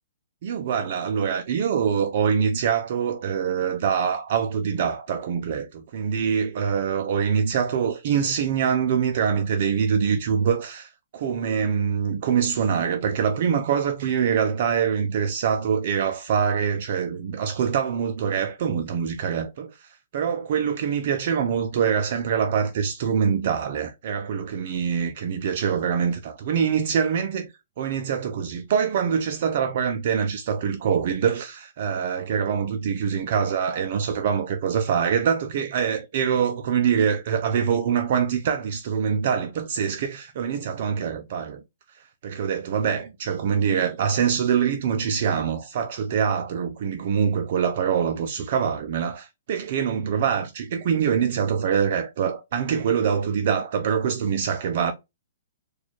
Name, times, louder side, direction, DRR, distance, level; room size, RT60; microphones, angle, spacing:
voice 1, 0.4-41.6 42.2-54.9, right 7 dB, 35° right, 0.4 m, -24 dB
4.2 x 2.3 x 2.9 m
hypercardioid pair, 180°, 0 cm